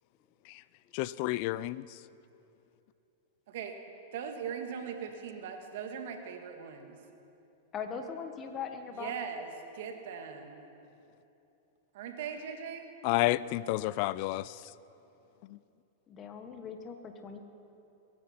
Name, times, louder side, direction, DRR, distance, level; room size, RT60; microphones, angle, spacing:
voice 1, 0.9-1.8 13.0-14.6, left 17 dB, 55° left, 19 dB, 0.4 m, -30 dB
voice 2, 4.1-7.0 8.9-10.7 11.9-12.9, right 7 dB, 65° right, 4 dB, 1.8 m, -40 dB
voice 3, 7.7-9.1 16.1-17.4, left 6 dB, 30° left, 6 dB, 1.3 m, -40 dB
22.5 x 9.7 x 5.7 m, 2.8 s
hypercardioid pair, 120°, 0 cm